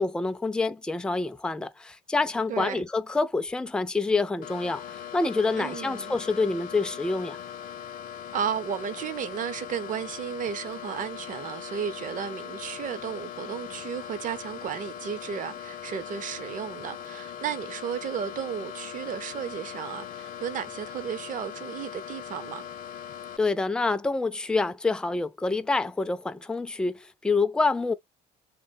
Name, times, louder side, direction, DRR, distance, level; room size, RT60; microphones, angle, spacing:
voice 1, 0.0-7.4 23.4-27.9, left 3 dB, 5° left, 0.3 m, -27 dB
voice 2, 2.5-2.8 5.6-6.1 8.3-22.7, right 8 dB, 50° right, 0.6 m, -34 dB
sound 1, 4.4-23.4, left 9 dB, 55° left, 0.6 m, -40 dB
3.2 x 2.1 x 2.6 m
cardioid pair, 110°, 17 cm